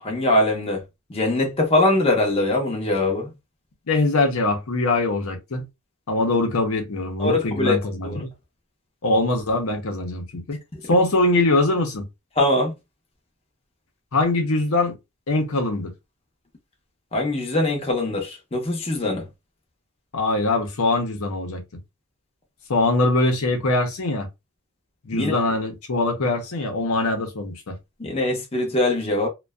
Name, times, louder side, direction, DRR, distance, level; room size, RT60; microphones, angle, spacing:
voice 1, 0.0-0.8 1.1-3.3 7.2-8.2 10.7-10.8 12.4-12.7 17.1-19.3 25.1-25.4 28.0-29.3, left 2 dB, 25° left, 0.6 m, -22 dB
voice 2, 3.9-5.6 6.1-8.3 9.0-10.6 10.9-12.1 14.1-14.9 15.3-15.9 20.1-21.6 22.7-24.3 25.0-27.7, left 2 dB, 80° left, 0.7 m, -22 dB
2.5 x 2.2 x 2.2 m
head